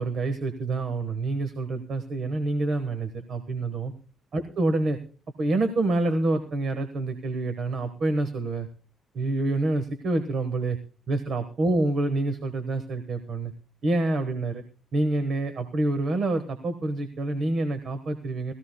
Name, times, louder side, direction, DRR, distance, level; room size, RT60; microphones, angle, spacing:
voice 1, 0.0-3.9 4.3-5.0 5.4-8.7 9.1-10.8 11.1-13.5 13.8-14.6 14.9-18.5, right 2 dB, 50° right, 9 dB, 1.3 m, -27 dB
19.5 x 15.0 x 2.2 m, 0.37 s
cardioid pair, 130°, 0 cm